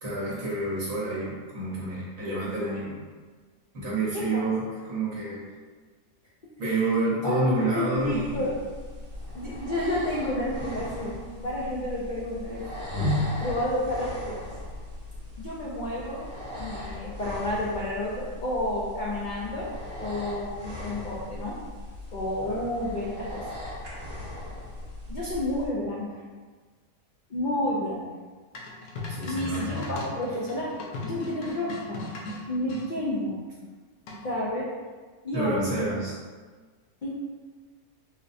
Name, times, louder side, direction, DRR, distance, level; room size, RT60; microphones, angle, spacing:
voice 1, 0.0-3.0 3.7-5.4 6.6-8.5 22.5-22.7 29.1-29.8 35.3-36.1, right 2 dB, 65° right, -7 dB, 1.5 m, -28 dB
voice 2, 7.2-8.6 9.3-12.6 13.4-14.4 15.4-16.2 16.5-19.7 20.0-21.6 22.1-23.4 25.1-26.2 27.3-28.0 29.2-30.7 31.0-32.0 32.5-33.4 34.2-34.7 35.2-35.8 37.0-37.1, left 1 dB, 65° left, -6 dB, 0.4 m, -30 dB
sound 1, 7.9-25.7, left 1 dB, 40° right, 1.3 m, -37 dB
sound 2, 28.6-32.9 34.1-34.5, left 2 dB, 85° left, 1.1 m, -38 dB
4.8 x 2.1 x 2.6 m, 1.4 s
omnidirectional pair, 1.5 m